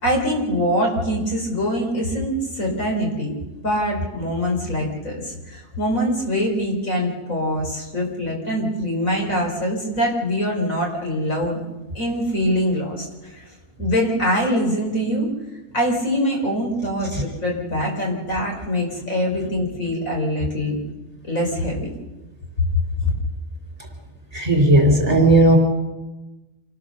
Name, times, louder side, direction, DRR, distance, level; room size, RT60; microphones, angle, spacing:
voice 1, 0.0-3.3 3.6-11.6 12.0-13.5 13.8-15.3 15.7-20.8 21.2-21.9, equal, 60° left, 0 dB, 5.2 m, -23 dB
voice 2, 24.3-25.6, right 1 dB, 25° right, 2 dB, 4.1 m, -15 dB
26.5 x 17.5 x 6.9 m, 1.1 s
omnidirectional pair, 1.6 m